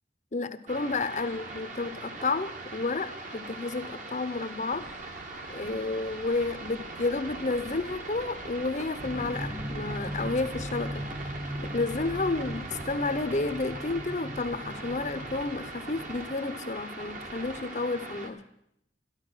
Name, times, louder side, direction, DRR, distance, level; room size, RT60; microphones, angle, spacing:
voice 1, 0.3-4.9 5.5-11.0 11.6-18.4, left 3 dB, 40° left, 12 dB, 0.7 m, -31 dB
sound 1, 0.7-18.3, right 2 dB, 45° right, 1.5 m, -41 dB
sound 2, 4.7-12.8, right 4 dB, 90° right, 0.5 m, -49 dB
sound 3, 9.0-16.3, equal, 10° right, 0.5 m, -39 dB
13.5 x 11.5 x 6.2 m, 0.76 s
head